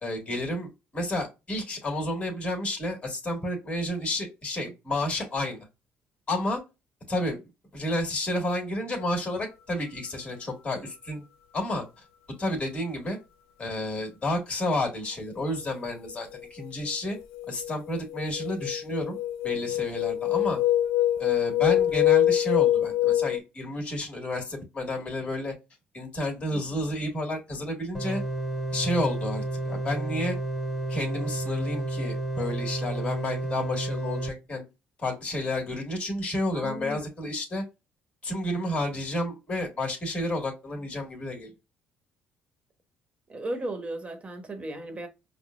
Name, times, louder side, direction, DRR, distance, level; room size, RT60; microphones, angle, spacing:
voice 1, 0.0-5.7 6.3-6.6 7.1-7.4 7.7-11.2 11.5-11.8 12.4-13.2 13.6-17.2 17.5-19.2 19.4-20.6 21.2-25.5 25.9-28.2 28.7-30.4 30.9-34.6 35.0-37.6 38.2-41.5, left 1 dB, 30° left, 1.8 m, -31 dB
sound 1, 16.3-16.7 17.1-23.4, left 12 dB, 90° left, 0.4 m, -25 dB
sound 2, 27.9-34.3, right 2 dB, 5° left, 1.9 m, -31 dB
voice 2, 36.5-37.0 43.3-45.1, right 1 dB, 30° right, 1.2 m, -35 dB
4.9 x 2.2 x 2.4 m
supercardioid pair, 65°, 4 cm